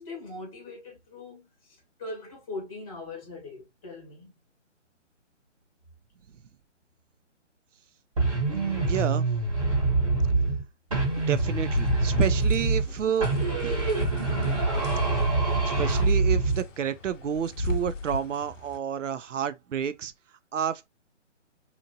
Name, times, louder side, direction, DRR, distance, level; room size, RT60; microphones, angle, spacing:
voice 1, 0.0-4.3, left 2 dB, 5° left, 0.9 m, -41 dB
sound 1, 8.2-10.6 10.9-12.9 13.2-16.6, right 3 dB, 25° right, 1.0 m, -25 dB
voice 2, 8.5-9.3 11.3-13.3 13.6-13.9 15.7-20.1 20.5-20.9, right 8 dB, 80° right, 0.6 m, -30 dB
sound 2, 11.0-18.8, left 1 dB, 90° left, 0.7 m, -35 dB
2.9 x 2.5 x 2.6 m
hypercardioid pair, 165°, 37 cm